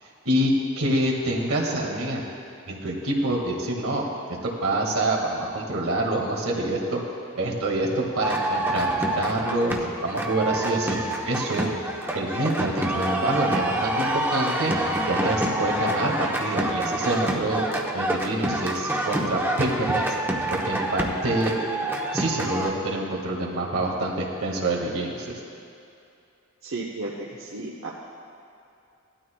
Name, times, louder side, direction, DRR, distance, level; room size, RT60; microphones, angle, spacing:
voice 1, 0.3-2.2 2.7-7.0 7.3-9.7 10.0-11.0 11.2-11.7 12.1-17.6 17.9-20.2 20.5-21.5 22.1-25.4, right 1 dB, 90° right, -1 dB, 2.0 m, -26 dB
sound 1, 8.2-22.7, right 1 dB, 10° right, 0.9 m, -27 dB
voice 2, 26.6-27.9, right 2 dB, 70° right, -5 dB, 1.1 m, -34 dB
18.0 x 12.5 x 2.3 m, 2.6 s
head